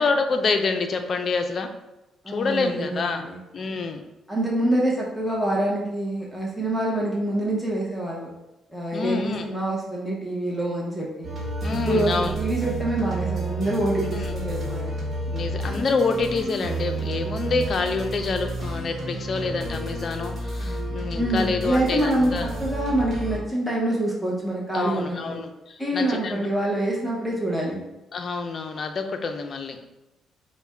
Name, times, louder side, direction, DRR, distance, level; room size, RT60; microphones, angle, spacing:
voice 1, 0.0-1.7 2.3-3.2 3.5-4.0 8.9-9.4 11.6-12.4 14.1-14.2 15.3-22.5 24.7-26.5 28.1-29.8, left 4 dB, 50° left, 6 dB, 0.4 m, -27 dB
voice 2, 2.2-3.4 4.3-8.3 8.7-11.3 11.7-15.0 21.2-25.4 25.8-27.8, right 1 dB, 5° left, -4 dB, 0.8 m, -26 dB
sound 1, 11.2-23.4, right 2 dB, 45° right, 1.1 m, -30 dB
4.1 x 2.1 x 3.5 m, 0.99 s
cardioid pair, 90°, 0 cm